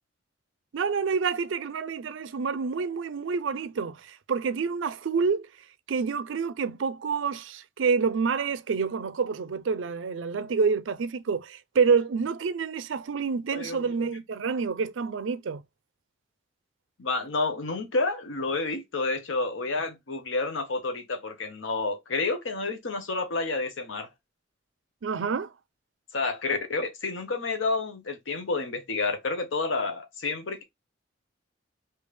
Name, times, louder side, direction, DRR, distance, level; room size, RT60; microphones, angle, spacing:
voice 1, 0.7-5.5 5.9-15.6 25.0-25.5, right 5 dB, 80° right, 0.5 m, -28 dB
voice 2, 13.5-13.9 17.0-24.1 26.1-30.6, left 3 dB, 90° left, 0.9 m, -29 dB
3.4 x 2.8 x 3.2 m
head